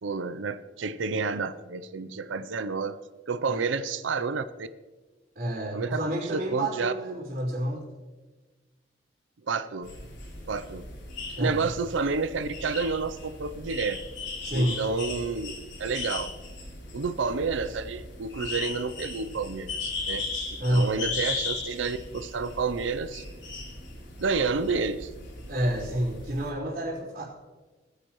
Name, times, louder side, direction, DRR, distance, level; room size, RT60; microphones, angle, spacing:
voice 1, 0.0-3.0 3.3-4.7 5.7-6.9 9.5-9.9 10.5-10.9 11.4-14.0 14.5-15.5 15.8-16.3 16.9-23.2 24.2-25.1, right 4 dB, 80° right, 12 dB, 0.5 m, -30 dB
voice 2, 5.3-7.8 11.4-11.7 14.4-14.8 20.6-20.9 25.5-27.2, right 1 dB, 55° right, -11 dB, 4.1 m, -29 dB
sound 1, 9.8-26.5, left 3 dB, 75° left, 3.8 m, -37 dB
19.0 x 10.0 x 3.1 m, 1.3 s
head